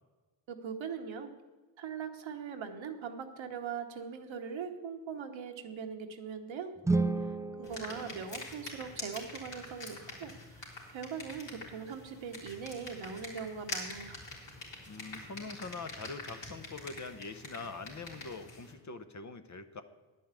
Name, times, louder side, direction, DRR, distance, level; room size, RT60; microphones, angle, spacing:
voice 1, 0.5-1.3 1.8-6.7 7.6-14.2, right 6 dB, 70° right, 5 dB, 1.2 m, -41 dB
sound 1, 6.8-9.0, right 3 dB, 5° right, 0.4 m, -33 dB
sound 2, 7.6-18.7, left 2 dB, 65° left, 3.5 m, -45 dB
voice 2, 7.9-8.2 14.9-19.8, left 4 dB, 35° left, 9 dB, 0.9 m, -44 dB
10.5 x 5.5 x 8.2 m, 1.3 s
cardioid pair, 60°, 47 cm